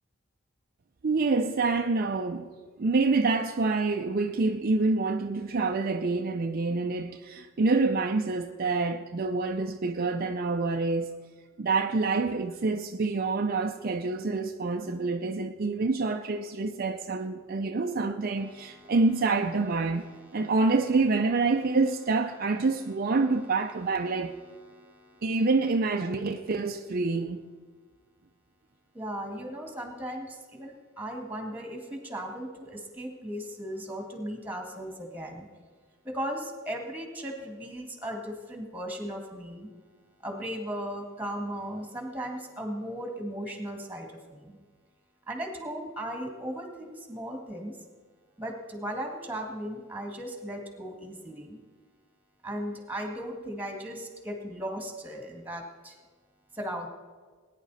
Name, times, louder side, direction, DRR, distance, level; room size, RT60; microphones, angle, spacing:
voice 1, 1.0-2.5 2.8-11.1 11.6-20.1 20.3-24.4 25.2-27.4, right 3 dB, 45° right, 0.5 m, -27 dB
voice 2, 18.4-19.0 19.9-20.5 22.7-23.2 23.7-25.4 28.9-35.5 36.0-39.7 40.2-44.6 45.3-47.8 48.4-51.6 52.4-56.0 56.5-56.9, equal, 10° right, 1.9 m, -37 dB
19.0 x 10.0 x 4.1 m
head